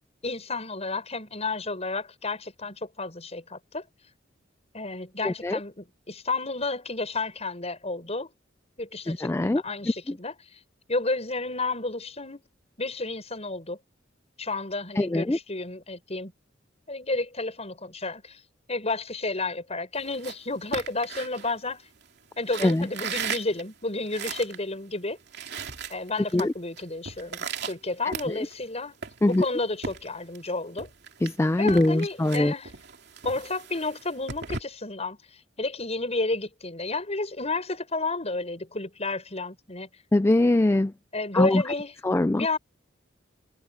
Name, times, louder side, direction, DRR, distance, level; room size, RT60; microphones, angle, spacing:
voice 1, 0.2-3.8 4.7-8.3 8.8-10.3 10.9-12.4 12.8-13.8 14.4-16.3 16.9-18.4 18.7-21.8 22.4-25.2 25.9-29.0 29.2-30.9 31.6-32.7 33.2-35.2 35.6-39.9 41.1-41.9 42.3-42.6, left 3 dB, 35° left, 7.3 m, -31 dB
voice 2, 5.2-5.6 9.1-9.6 15.0-15.4 22.6-22.9 26.3-26.5 28.0-28.4 29.2-29.5 31.2-32.5 40.1-40.9 41.3-41.6 42.0-42.5, left 1 dB, 15° left, 0.4 m, -22 dB
sound 1, 20.0-22.0 22.4-24.6 25.0-25.1 25.2-26.5 26.8-28.6 29.0-30.5 30.8-34.6, right 5 dB, 60° right, 2.9 m, -37 dB
head